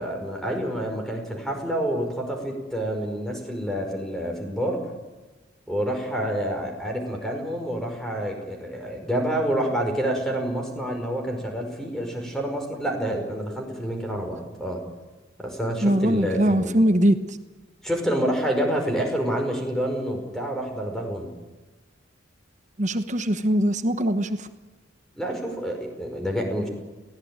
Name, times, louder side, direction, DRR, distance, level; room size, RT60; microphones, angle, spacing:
voice 1, 0.0-4.8 5.7-14.8 15.4-16.7 17.8-21.3 25.2-26.7, right 1 dB, 5° left, 2 dB, 5.2 m, -28 dB
voice 2, 15.8-17.2 22.8-24.5, right 1 dB, 35° right, 9 dB, 1.2 m, -21 dB
23.0 x 17.5 x 9.0 m, 1.2 s
head